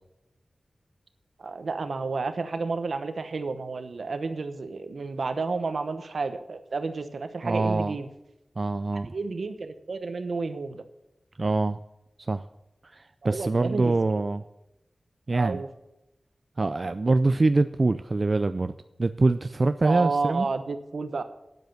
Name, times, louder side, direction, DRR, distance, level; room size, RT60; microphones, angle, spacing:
voice 1, 1.4-8.1 9.1-10.8 13.2-14.0 15.3-15.7 19.8-21.2, right 4 dB, 80° right, 9 dB, 1.0 m, -31 dB
voice 2, 7.4-8.0 8.6-9.1 11.4-11.8 12.2-12.4 12.8-14.4 15.3-15.6 16.6-18.7 19.0-20.5, right 3 dB, 50° right, 10 dB, 0.4 m, -24 dB
9.3 x 7.8 x 7.9 m, 0.90 s
wide cardioid pair, 60°, 0 cm